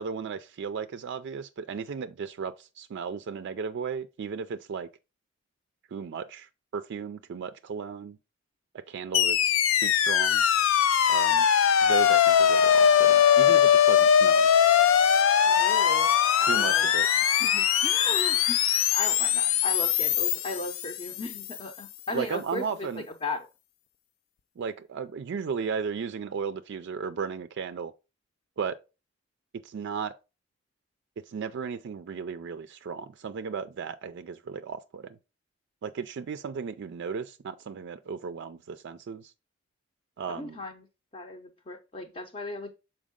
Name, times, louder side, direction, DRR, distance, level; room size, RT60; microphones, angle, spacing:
voice 1, 0.0-4.9 5.9-8.2 8.7-10.4 11.1-11.5 11.8-14.5 16.4-17.1 22.1-23.1 24.6-27.9 28.6-28.8 29.6-30.2 31.3-35.2 35.8-39.3 40.2-40.6, right 6 dB, 60° right, 0.4 m, -35 dB
sound 1, 9.1-21.4, left 8 dB, 80° left, 0.4 m, -21 dB
voice 2, 15.5-16.9 17.2-18.6 18.9-22.9 23.2-23.5 40.4-40.9 41.1-42.7, left 2 dB, 30° left, 0.6 m, -36 dB
6.2 x 4.5 x 3.6 m
head